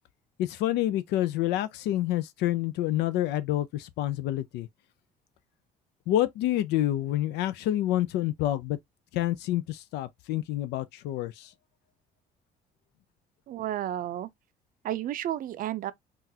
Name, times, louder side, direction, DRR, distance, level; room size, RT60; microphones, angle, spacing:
voice 1, 0.4-4.7 6.1-8.8 9.1-11.5, left 13 dB, 85° left, 0.4 m, -28 dB
voice 2, 13.5-14.3 14.8-15.9, right 12 dB, 55° right, 0.5 m, -32 dB
3.7 x 2.4 x 2.7 m
cardioid pair, 110°, 17 cm